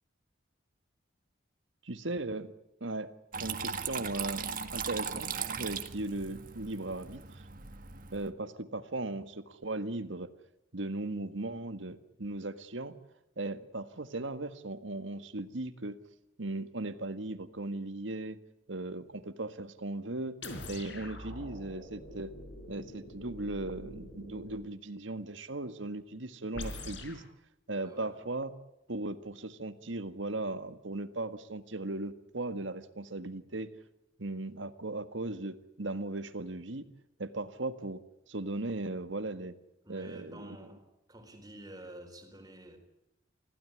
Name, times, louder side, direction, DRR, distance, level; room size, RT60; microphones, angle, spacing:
voice 1, 1.8-2.5 2.8-3.1 3.4-5.3 5.5-7.4 8.1-10.3 10.7-12.9 13.4-16.0 16.4-18.4 18.7-20.4 20.7-22.3 22.7-27.2 27.7-28.5 28.9-33.7 34.2-36.9 37.2-38.0 38.3-39.5 39.9-40.6, right 2 dB, 80° right, 1.7 m, -37 dB
Water tap faucet / Trickle dribble, 3.3-8.3, right 6 dB, 45° right, 1.6 m, -38 dB
sound 1, 20.4-24.7 26.5-27.3, left 1 dB, 70° left, 4.5 m, -44 dB
voice 2, 27.8-28.2 39.8-42.8, right 1 dB, 20° right, 4.2 m, -49 dB
25.5 x 16.5 x 9.8 m
head